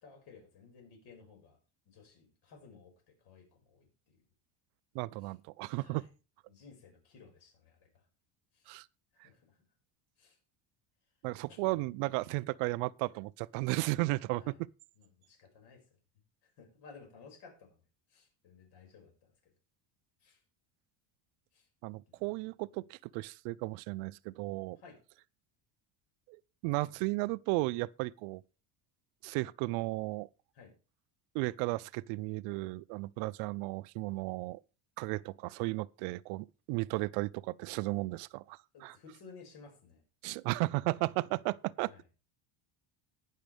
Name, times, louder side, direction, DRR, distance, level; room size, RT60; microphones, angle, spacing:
voice 1, 0.0-1.6 1.9-4.2 5.2-5.3 5.7-6.1 6.5-8.0 8.5-8.7 9.2-9.6 10.2-10.4 11.5-11.8 14.4-14.6 15.0-15.8 16.4-17.8 18.1-19.3 20.2-20.4 21.5-21.7 22.1-22.2 24.8-25.0 30.5-30.7 35.1-35.2 38.7-40.0 41.9-42.0, left 5 dB, 50° left, 5.6 m, -56 dB
voice 2, 4.9-6.1 8.7-8.9 9.2-9.3 11.2-14.7 21.8-24.8 26.3-28.4 29.2-30.3 31.3-34.6 35.0-39.0 40.2-41.9, right 22 dB, 85° right, 0.6 m, -34 dB
19.5 x 6.7 x 3.4 m
cardioid pair, 160°, 49 cm